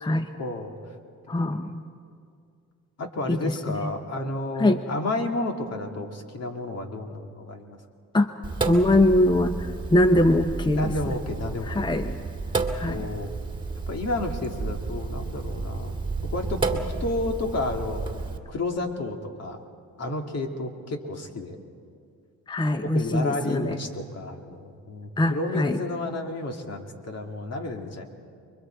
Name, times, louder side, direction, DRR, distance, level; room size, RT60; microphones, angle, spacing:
voice 1, 0.4-0.7 1.3-1.6 3.0-7.8 10.7-11.9 12.5-13.3 13.9-16.0 16.3-18.1 18.5-19.6 20.0-21.6 22.8-28.1, left 2 dB, 55° left, 3 dB, 2.6 m, -31 dB
voice 2, 1.3-1.8 3.3-3.8 4.6-4.8 8.1-8.3 8.7-11.1 11.7-12.2 12.7-13.1 22.5-23.8 25.2-25.8, left 1 dB, 15° left, 8 dB, 0.8 m, -22 dB
Sink (filling or washing), 8.4-18.4, right 3 dB, 15° right, 2.1 m, -31 dB
29.5 x 23.0 x 4.6 m, 2.3 s
cardioid pair, 90°, 30 cm